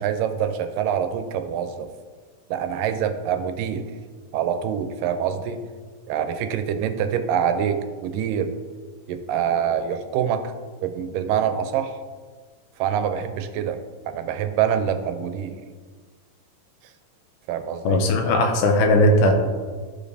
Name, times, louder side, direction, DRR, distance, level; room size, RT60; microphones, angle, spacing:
voice 1, 0.0-1.9 2.5-3.8 4.3-5.6 6.1-8.6 9.1-10.5 10.8-12.0 12.8-15.6 17.5-18.0, right 8 dB, 90° right, 8 dB, 2.2 m, -25 dB
voice 2, 17.9-19.3, left 1 dB, 80° left, 3 dB, 2.2 m, -18 dB
13.5 x 5.1 x 2.7 m, 1.5 s
omnidirectional pair, 3.8 m